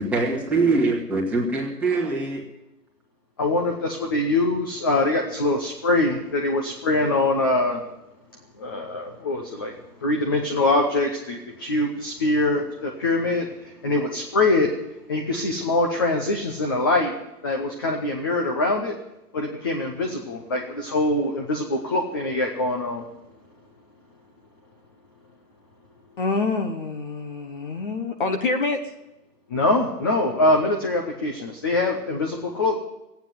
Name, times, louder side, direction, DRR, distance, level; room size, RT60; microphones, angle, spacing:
voice 1, 0.0-2.4, right 3 dB, 5° right, -5 dB, 2.1 m, -23 dB
voice 2, 3.4-7.9 8.6-9.7 10.0-14.7 15.1-17.1 17.4-18.9 19.3-23.1 29.5-32.7, left 2 dB, 15° left, 1 dB, 0.7 m, -23 dB
voice 3, 26.2-28.8, left 3 dB, 30° left, 8 dB, 1.3 m, -26 dB
15.0 x 9.2 x 9.6 m, 0.91 s
hypercardioid pair, 155°, 48 cm